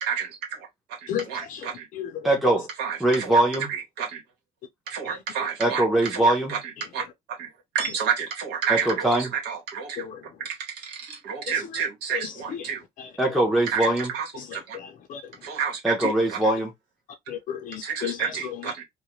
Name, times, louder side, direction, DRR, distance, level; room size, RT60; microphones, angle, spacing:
voice 1, 0.0-1.9 2.8-3.4 3.7-4.2 4.9-5.8 6.1-6.6 6.9-7.0 7.3-7.5 7.7-10.1 10.4-12.8 13.7-14.8 15.4-16.4 17.8-18.8, right 7 dB, 85° right, 1.0 m, -30 dB
voice 2, 1.1-1.7 2.0-2.3 10.0-10.2 12.1-12.3 13.0-13.1 14.7-15.2 17.3-18.2, left 9 dB, 50° left, 0.5 m, -33 dB
voice 3, 2.2-2.7 3.0-3.7 5.6-6.5 8.7-9.3 13.2-14.1 15.8-16.7, right 1 dB, ahead, 0.6 m, -22 dB
2.3 x 2.1 x 2.9 m
cardioid pair, 110°, 17 cm